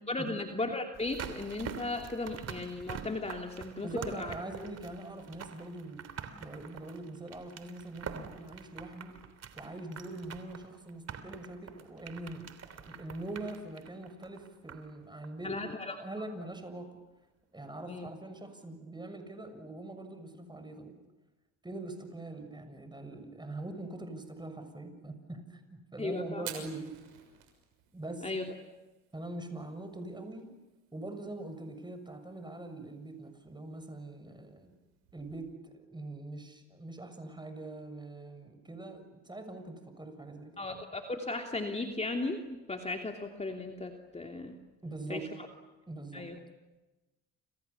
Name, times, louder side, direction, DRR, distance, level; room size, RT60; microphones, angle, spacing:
voice 1, 0.1-4.3 15.4-16.0 17.9-18.1 26.0-26.5 28.2-28.4 40.6-44.6 45.1-45.2 46.1-46.4, left 2 dB, 20° left, 3 dB, 3.0 m, -36 dB
sound 1, 0.9-15.0 15.2-15.3, right 7 dB, 50° right, 3.3 m, -46 dB
voice 2, 3.8-6.1 6.4-9.2 9.6-15.6 16.0-17.0 17.5-21.0 21.6-26.9 27.9-28.3 29.1-30.5 30.9-34.7 35.1-40.6 44.8-45.3 45.9-46.3, right 2 dB, 15° right, 8 dB, 6.8 m, -43 dB
Fire, 26.3-35.5, right 11 dB, 85° right, 6.4 m, -53 dB
29.5 x 28.0 x 7.2 m, 1.1 s
supercardioid pair, 75°, 33 cm